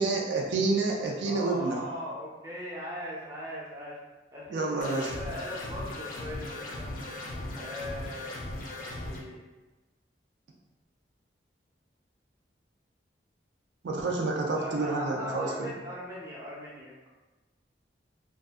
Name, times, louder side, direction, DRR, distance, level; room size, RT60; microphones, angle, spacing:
voice 1, 0.0-1.9 4.5-5.1 13.8-15.7, right 3 dB, 75° right, -1 dB, 0.4 m, -29 dB
voice 2, 1.2-4.0 4.3-7.0 7.5-8.3 9.0-9.4 14.6-17.1, equal, 15° right, -6 dB, 0.5 m, -40 dB
sound 1, 4.8-9.2, left 1 dB, 50° left, 0.4 m, -38 dB
2.6 x 2.4 x 2.3 m, 1.2 s
head